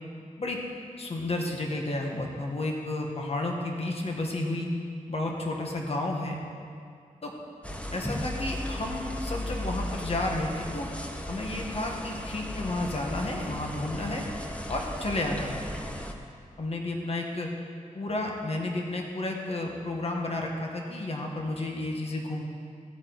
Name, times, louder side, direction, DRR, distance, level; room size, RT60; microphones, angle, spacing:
voice 1, 1.0-4.7 5.1-6.4 7.2-7.3 7.9-10.9 11.3-14.2 14.7-15.6 16.6-17.5 17.9-22.4, left 2 dB, 50° left, 0 dB, 1.4 m, -31 dB
sound 1, 7.6-16.1, left 1 dB, 10° left, 0.8 m, -36 dB
15.5 x 9.0 x 4.0 m, 2.3 s
wide cardioid pair, 120°, 14 cm